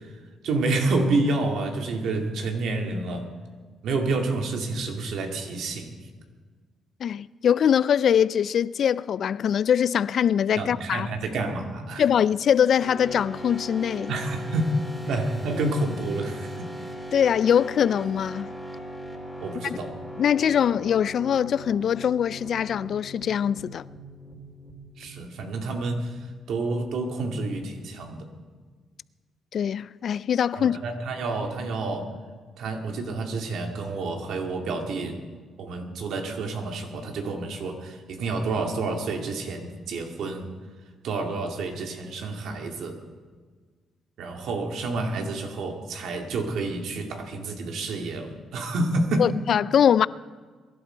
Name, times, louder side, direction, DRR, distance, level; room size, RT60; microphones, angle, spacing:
voice 1, 0.4-3.3 3.8-5.9 10.6-12.0 14.1-14.8 15.1-16.7 19.4-19.9 25.0-26.1 26.5-28.3 30.5-32.1 32.6-35.2 35.6-40.5 41.0-43.0 44.2-49.3, right 2 dB, 75° right, 2.2 m, -29 dB
voice 2, 7.0-11.1 12.0-14.1 17.1-18.5 19.6-19.8 20.2-23.9 29.5-30.8 49.2-50.1, left 8 dB, 60° left, 0.3 m, -22 dB
sound 1, 12.8-26.3, right 1 dB, ahead, 3.4 m, -40 dB
23.0 x 11.5 x 4.5 m
cardioid pair, 90°, 0 cm